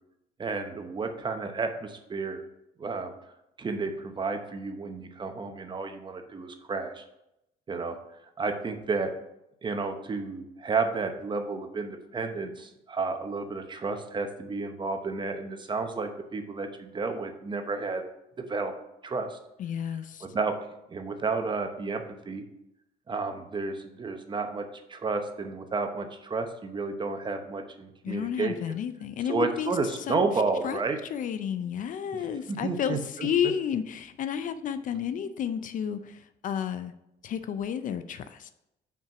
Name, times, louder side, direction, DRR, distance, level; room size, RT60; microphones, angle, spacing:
voice 1, 0.4-2.4 2.8-3.1 3.6-7.0 7.7-8.0 8.4-9.1 9.6-18.0 18.4-18.7 19.0-19.4 20.2-20.5 20.9-22.4 23.1-24.6 24.9-28.8 29.3-31.0 32.1-33.3, right 4 dB, 25° right, 6 dB, 0.9 m, -31 dB
voice 2, 19.6-20.3 28.0-29.7 30.1-30.3 30.6-30.8 31.1-36.9 37.2-38.5, left 8 dB, 50° left, 11 dB, 0.5 m, -31 dB
5.8 x 4.5 x 5.8 m, 0.85 s
cardioid pair, 110°, 17 cm